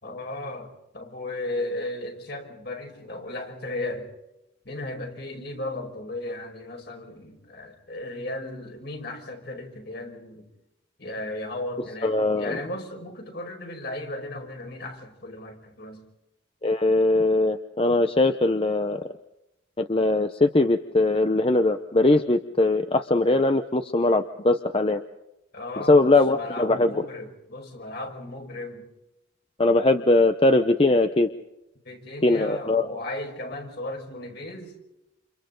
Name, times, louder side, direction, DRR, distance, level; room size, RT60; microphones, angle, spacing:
voice 1, 0.0-4.1 4.7-10.5 11.0-16.0 25.5-28.9 31.9-34.7, left 1 dB, 55° left, 3 dB, 5.3 m, -35 dB
voice 2, 12.0-12.6 16.6-19.0 19.8-25.0 25.9-27.0 29.6-31.3 32.2-32.9, left 2 dB, 30° left, 8 dB, 0.8 m, -21 dB
30.0 x 28.0 x 3.9 m, 0.91 s
head